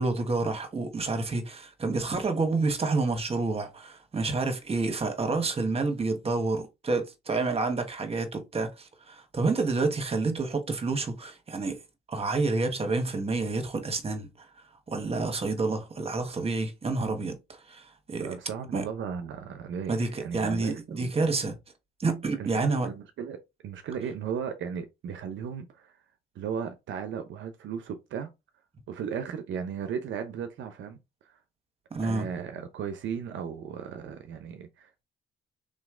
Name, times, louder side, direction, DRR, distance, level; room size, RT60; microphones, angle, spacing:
voice 1, 0.0-11.8 12.1-14.3 14.9-17.4 17.7-18.3 18.7-18.9 19.9-21.6 22.0-22.9 31.9-32.3, right 3 dB, 30° right, 1.4 m, -29 dB
voice 2, 18.2-21.1 22.4-25.9 26.3-28.3 28.9-31.4 32.0-35.0, right 7 dB, 75° right, 0.8 m, -36 dB
3.9 x 3.1 x 3.8 m
cardioid pair, 90°, 20 cm